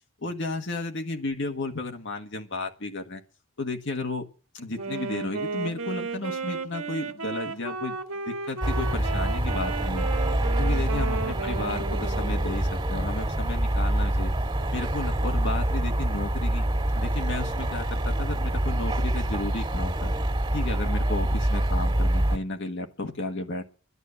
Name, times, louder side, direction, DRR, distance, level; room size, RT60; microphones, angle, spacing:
voice 1, 0.2-3.2 3.6-4.3 4.5-8.0 8.3-10.1 10.6-14.3 14.7-16.6 16.9-20.1 20.5-23.6, left 2 dB, 60° left, 4 dB, 1.5 m, -33 dB
Wind instrument woodwind instrument, 4.7-12.8, right 4 dB, 80° right, 1.6 m, -34 dB
sound 1, 8.6-22.4, right 1 dB, 25° right, 2.2 m, -26 dB
11.0 x 10.5 x 6.9 m, 0.36 s
head